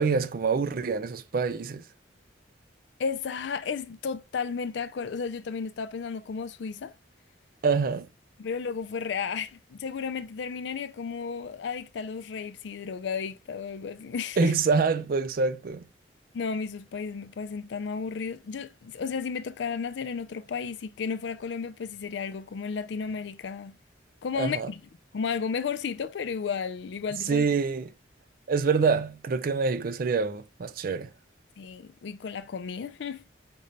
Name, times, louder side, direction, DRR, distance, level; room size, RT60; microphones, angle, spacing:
voice 1, 0.0-1.8 7.6-8.1 14.4-15.9 24.4-24.7 27.1-27.9 28.5-31.1, right 5 dB, 50° right, 0.4 m, -26 dB
voice 2, 3.0-6.9 8.4-14.5 16.3-23.8 24.2-24.8 25.1-27.5 31.6-33.2, left 5 dB, 65° left, 0.4 m, -33 dB
5.3 x 2.6 x 3.1 m
head